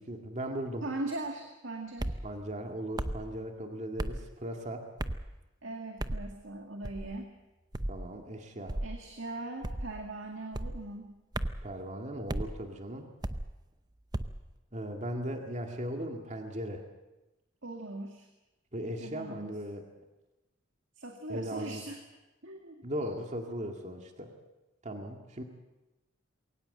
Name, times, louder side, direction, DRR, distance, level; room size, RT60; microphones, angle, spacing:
voice 1, 0.0-0.8 2.2-4.9 7.9-8.8 11.6-13.1 14.7-16.8 18.7-19.8 21.3-21.8 22.8-24.3 24.8-25.4, equal, 35° right, 3 dB, 2.1 m, -38 dB
voice 2, 0.8-2.2 5.6-7.3 8.8-11.1 17.6-18.3 19.0-19.5 21.0-22.0 22.4-22.8, right 2 dB, 70° right, 3 dB, 2.1 m, -40 dB
sound 1, 2.0-2.2 3.0-3.2 4.0-4.2 5.0-5.3 6.0-6.3 6.8-7.1 7.7-8.0 8.7-9.0 9.6-10.0 10.5-10.8 11.3-11.7 12.3-12.5 13.2-13.5 14.1-14.4, right 1 dB, 20° right, 0.7 m, -34 dB
22.0 x 18.0 x 7.8 m, 1.0 s
head